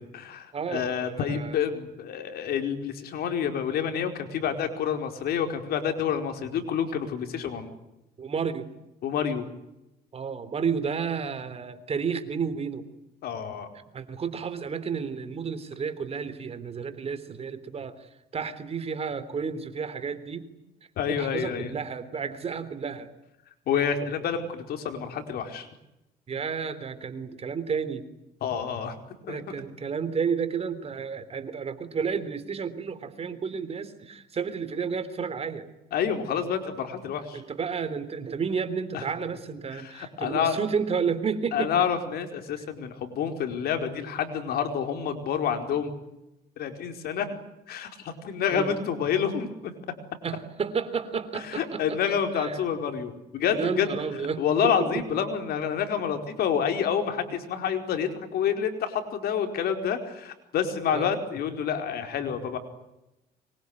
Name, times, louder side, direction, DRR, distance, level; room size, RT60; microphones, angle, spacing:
voice 1, 0.0-7.7 9.0-9.4 13.2-13.7 21.0-21.7 23.7-25.7 28.4-28.9 29.3-29.4 35.9-37.4 38.9-39.0 39.7-40.6 41.5-45.9 46.6-47.3 47.7-49.7 51.3-53.9 54.4-62.6, left 7 dB, 65° left, 6 dB, 4.7 m, -28 dB
voice 2, 0.5-1.6 8.2-8.7 10.1-12.8 13.9-20.5 21.1-23.1 26.3-28.0 29.3-35.7 37.3-41.9 48.5-48.7 50.2-52.0 52.3-52.6 53.5-55.2 60.9-61.1, right 6 dB, 35° right, 13 dB, 3.3 m, -31 dB
25.0 x 23.0 x 9.7 m, 0.91 s
cardioid pair, 110°, 17 cm